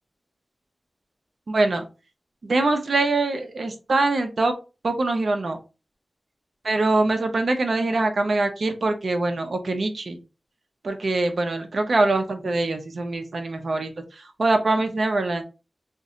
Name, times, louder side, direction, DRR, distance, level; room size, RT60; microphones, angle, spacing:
voice 1, 1.5-1.8 2.4-4.5 4.8-5.6 6.6-10.2 10.8-15.4, right 2 dB, 70° right, 6 dB, 0.6 m, -23 dB
2.6 x 2.1 x 3.7 m, 0.29 s
wide cardioid pair, 80°, 0 cm